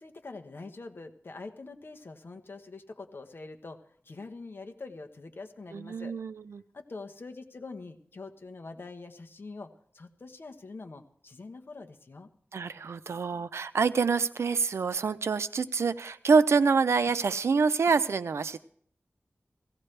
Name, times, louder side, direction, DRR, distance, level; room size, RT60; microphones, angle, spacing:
voice 1, 0.0-6.1 6.7-12.3, left 3 dB, 55° left, 6 dB, 1.2 m, -44 dB
voice 2, 5.7-6.3 12.5-18.6, right 5 dB, 90° right, 13 dB, 0.6 m, -26 dB
17.0 x 16.0 x 3.3 m, 0.63 s
wide cardioid pair, 95°, 4 cm